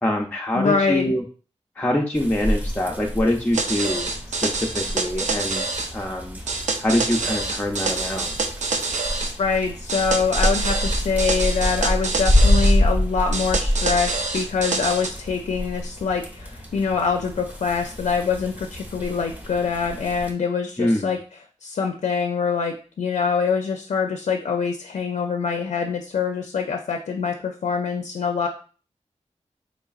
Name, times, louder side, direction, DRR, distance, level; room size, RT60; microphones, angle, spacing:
voice 1, 0.0-1.2 1.8-6.4 6.8-8.3 20.8-21.1, left 1 dB, 15° left, -1 dB, 0.5 m, -24 dB
voice 2, 0.5-1.1 9.4-21.2 21.6-28.5, left 5 dB, 75° left, 4 dB, 0.4 m, -24 dB
sound 1, 2.1-20.3, left 1 dB, 15° right, 0.8 m, -27 dB
sound 2, 3.5-5.9 6.5-9.3 9.9-12.8 13.3-15.1, right 3 dB, 80° right, 0.5 m, -26 dB
3.8 x 3.2 x 2.3 m, 0.39 s
cardioid pair, 65°, 12 cm